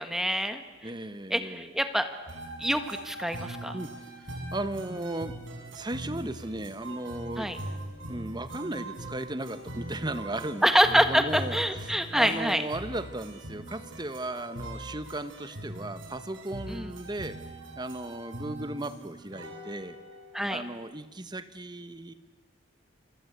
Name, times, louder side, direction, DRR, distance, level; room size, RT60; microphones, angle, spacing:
voice 1, 0.0-0.9 1.3-2.1 2.6-3.7 7.4-7.6 10.6-12.6 16.7-16.9 20.3-20.6, equal, ahead, 8 dB, 1.6 m, -26 dB
voice 2, 0.8-1.7 3.7-5.4 5.7-7.5 8.1-17.4 17.8-20.0 20.5-22.1, right 1 dB, 20° right, 11 dB, 1.3 m, -36 dB
sound 1, 2.3-20.4, right 1 dB, 65° right, 6.6 m, -41 dB
29.0 x 24.5 x 8.2 m, 1.2 s
head